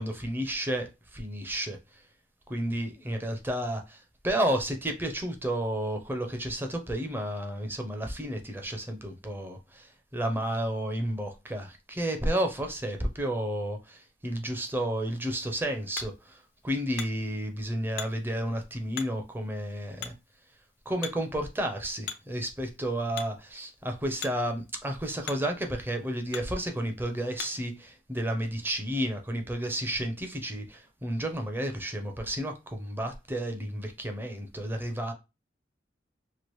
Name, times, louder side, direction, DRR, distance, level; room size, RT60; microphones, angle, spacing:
voice 1, 0.0-1.8 2.5-16.4 16.6-20.1 20.9-35.1, right 1 dB, 10° right, 0.5 m, -32 dB
Hammer, 15.1-27.8, left 8 dB, 60° left, 0.4 m, -45 dB
3.0 x 2.4 x 3.0 m
head